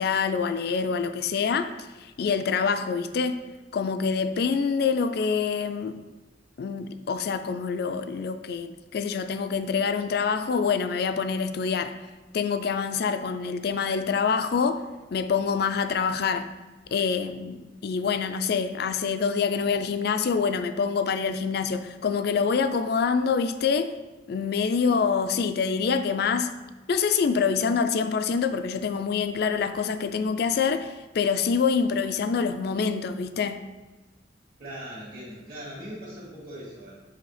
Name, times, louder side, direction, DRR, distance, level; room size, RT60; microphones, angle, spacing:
voice 1, 0.0-1.7 2.0-3.4 3.7-6.0 6.6-11.9 12.3-14.8 15.1-16.5 16.9-23.9 24.3-26.5 26.9-33.6, left 5 dB, 60° left, 0.4 m, -26 dB
voice 2, 34.6-37.0, equal, 55° right, 2.0 m, -40 dB
7.6 x 2.8 x 4.9 m
head